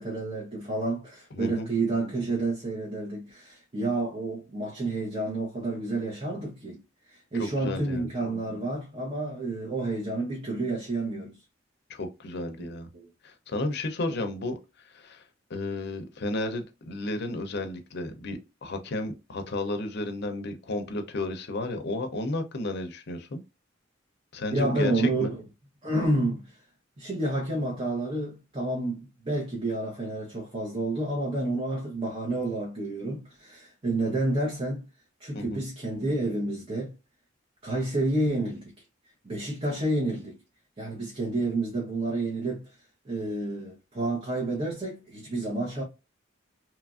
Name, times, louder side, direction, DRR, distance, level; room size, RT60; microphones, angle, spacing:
voice 1, 0.0-6.8 7.1-11.4 12.7-13.0 14.1-14.2 24.5-25.4 25.8-26.6 27.0-34.8 35.2-36.9 37.6-38.7 39.2-40.3 40.8-42.8 43.0-45.8, right 2 dB, 30° right, 0.8 m, -30 dB
voice 2, 1.3-1.7 7.4-8.1 11.9-12.9 13.2-14.6 14.9-15.2 15.5-23.4 24.3-25.3 35.3-35.6, left 2 dB, 60° left, 0.6 m, -33 dB
3.0 x 2.4 x 2.3 m
head